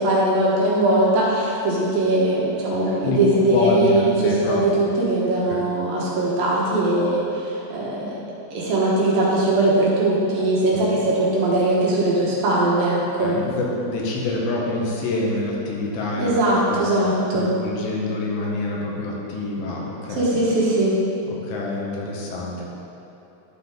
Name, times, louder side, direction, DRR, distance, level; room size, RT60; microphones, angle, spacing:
voice 1, 0.0-8.2 8.5-13.4 16.2-17.5 20.1-21.0, right 1 dB, 65° right, -6 dB, 2.7 m, -20 dB
voice 2, 2.7-4.6 5.5-5.6 10.7-10.8 13.2-16.3 16.7-20.4 21.3-22.6, left 2 dB, 90° left, -3 dB, 3.4 m, -27 dB
11.5 x 6.0 x 3.7 m, 2.9 s
omnidirectional pair, 4.8 m